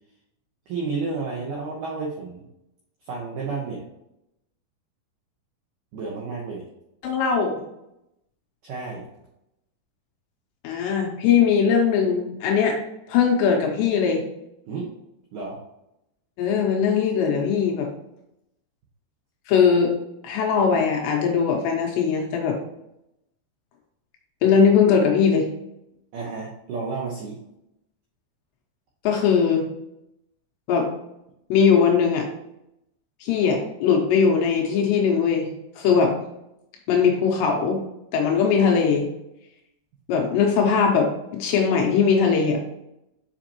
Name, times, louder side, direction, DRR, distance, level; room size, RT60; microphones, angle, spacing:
voice 1, 0.7-2.4 3.1-3.8 5.9-6.6 8.6-9.0 14.7-14.9 15.3-15.6 26.1-27.4, right 4 dB, 80° right, -2 dB, 1.9 m, -31 dB
voice 2, 7.0-7.6 10.6-12.8 13.1-14.2 16.4-17.9 19.5-19.9 20.2-22.6 24.4-25.5 29.0-29.7 30.7-30.9 31.5-32.3 33.2-36.1 36.9-37.8 38.1-39.1 40.1-42.6, left 6 dB, 80° left, 1 dB, 2.9 m, -20 dB
6.9 x 5.1 x 2.9 m, 0.85 s
omnidirectional pair, 5.2 m